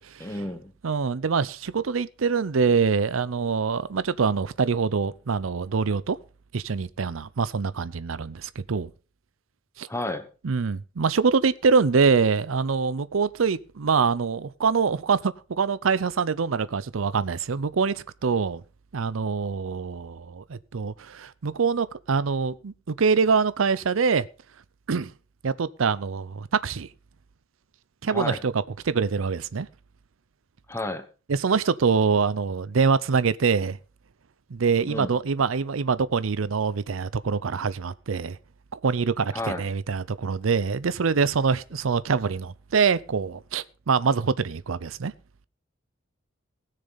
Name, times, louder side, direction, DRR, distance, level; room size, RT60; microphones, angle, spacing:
voice 1, 0.2-0.7 9.9-10.3 28.1-28.4 30.7-31.0 34.9-35.1 39.3-39.7, left 2 dB, 15° left, 1.2 m, -31 dB
voice 2, 0.8-6.2 6.5-8.9 9.8-9.9 10.4-17.9 18.2-18.6 18.9-24.2 24.9-25.1 25.4-26.9 28.0-29.7 31.3-33.8 34.5-38.4 38.8-45.1, right 5 dB, 80° right, 0.6 m, -24 dB
19.0 x 6.7 x 4.1 m
head